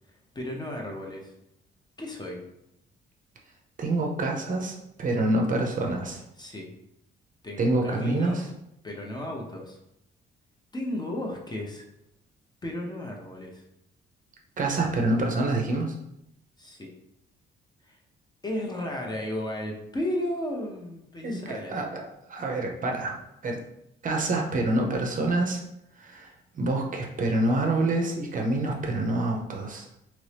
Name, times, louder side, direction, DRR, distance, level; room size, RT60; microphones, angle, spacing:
voice 1, 0.3-1.3 2.0-2.4 6.4-6.7 7.4-8.5 8.8-9.8 10.7-11.9 12.6-13.6 16.6-16.9 17.8-18.0 18.4-21.8, left 1 dB, 20° left, 0 dB, 0.7 m, -34 dB
voice 2, 3.8-6.2 7.6-8.4 14.6-15.9 21.2-22.0 22.3-23.2 23.4-23.6 24.0-25.6 26.0-29.8, right 2 dB, 40° right, 1 dB, 0.6 m, -27 dB
2.9 x 2.6 x 3.3 m, 0.81 s
cardioid pair, 90°, 20 cm